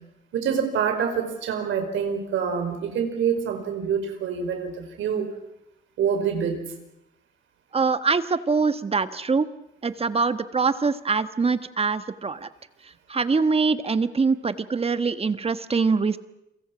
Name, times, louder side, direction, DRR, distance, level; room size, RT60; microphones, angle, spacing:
voice 1, 0.3-5.3 6.0-6.6, right 7 dB, 75° right, 7 dB, 5.0 m, -26 dB
voice 2, 7.7-9.5 9.8-12.5 12.8-16.2, right 4 dB, 30° right, 12 dB, 1.4 m, -24 dB
29.5 x 23.0 x 6.2 m, 0.86 s
cardioid pair, 90°, 20 cm